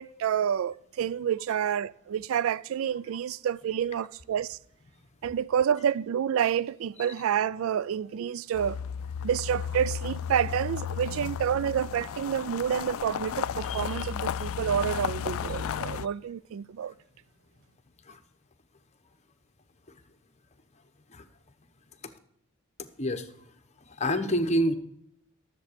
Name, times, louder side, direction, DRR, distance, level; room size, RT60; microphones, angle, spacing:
voice 1, 0.0-4.6 5.2-8.8 9.2-16.9, right 8 dB, 70° right, 0.3 m, -29 dB
sound 1, 8.5-16.1, left 8 dB, 70° left, 0.4 m, -34 dB
voice 2, 13.7-14.1 14.4-14.5 18.1-18.2 21.1-21.2 22.8-23.3 23.8-24.7, equal, 30° left, 1.0 m, -29 dB
13.5 x 7.5 x 5.0 m
head